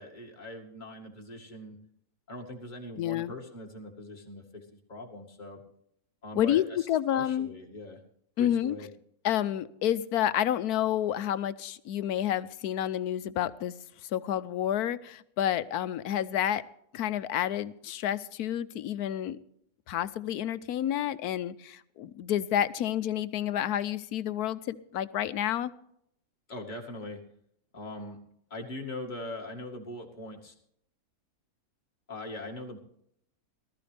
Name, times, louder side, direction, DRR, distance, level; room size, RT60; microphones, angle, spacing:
voice 1, 0.0-1.8 2.3-5.6 6.2-6.9 7.1-8.0 8.4-8.9 26.5-27.2 27.7-28.2 28.5-30.5 32.1-32.8, left 1 dB, 30° left, -1 dB, 2.3 m, -41 dB
voice 2, 3.0-3.3 6.4-7.5 8.4-8.8 9.2-13.7 14.0-16.6 16.9-19.4 19.9-25.7, left 11 dB, 80° left, 15 dB, 1.2 m, -29 dB
19.0 x 13.5 x 3.4 m, 0.72 s
omnidirectional pair, 1.6 m